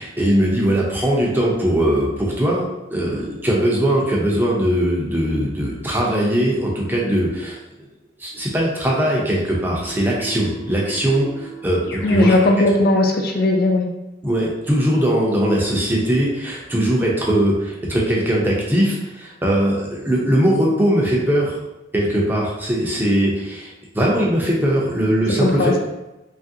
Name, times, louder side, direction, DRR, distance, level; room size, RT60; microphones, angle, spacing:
voice 1, 0.0-2.7 2.9-7.6 8.2-12.3 14.2-21.6 21.9-25.7, right 1 dB, 10° right, -4 dB, 0.4 m, -20 dB
Keyboard (musical), 9.9-12.6, right 2 dB, 90° left, 0.9 m, -36 dB
voice 2, 12.0-13.9 25.4-25.8, left 2 dB, 50° left, 2 dB, 0.3 m, -17 dB
3.0 x 2.5 x 2.6 m, 0.98 s
head